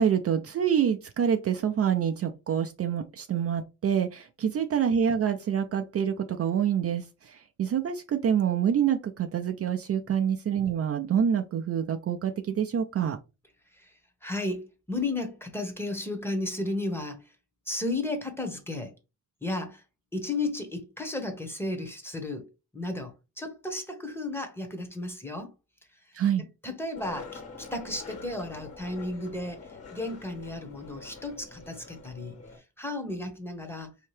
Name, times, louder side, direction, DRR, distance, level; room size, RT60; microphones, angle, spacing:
voice 1, 0.0-13.2 26.1-26.4, right 8 dB, 50° right, 0.4 m, -26 dB
voice 2, 13.7-17.2 17.7-18.9 19.4-19.8 20.1-22.5 22.7-25.5 26.4-33.9, left 2 dB, 5° left, 0.9 m, -34 dB
Skateboard, 26.9-32.6, left 4 dB, 45° left, 1.5 m, -45 dB
4.3 x 2.8 x 3.2 m
wide cardioid pair, 135°, 31 cm